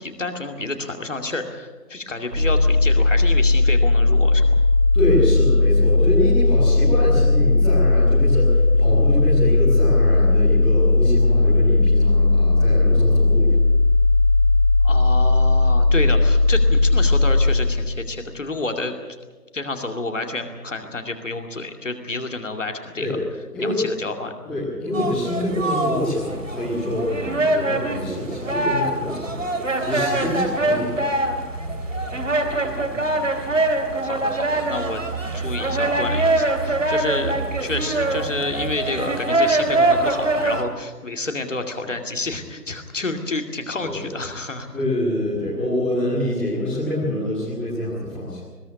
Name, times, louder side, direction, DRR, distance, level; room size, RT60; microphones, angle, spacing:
voice 1, 0.0-4.5 14.8-18.9 19.5-23.2 23.6-24.3 32.6-35.0 35.3-44.7, left 2 dB, 50° left, 5 dB, 2.5 m, -29 dB
sound 1, 2.3-18.1, left 2 dB, 75° right, 4.0 m, -17 dB
voice 2, 4.9-13.5 23.0-23.1 23.5-23.8 24.4-31.1 43.8-44.0 44.7-48.4, left 1 dB, ahead, -10 dB, 1.9 m, -26 dB
sound 2, 24.9-40.6, right 2 dB, 50° right, 2.7 m, -23 dB
21.5 x 14.0 x 9.9 m, 1.3 s
figure-of-eight pair, 160°, 47 cm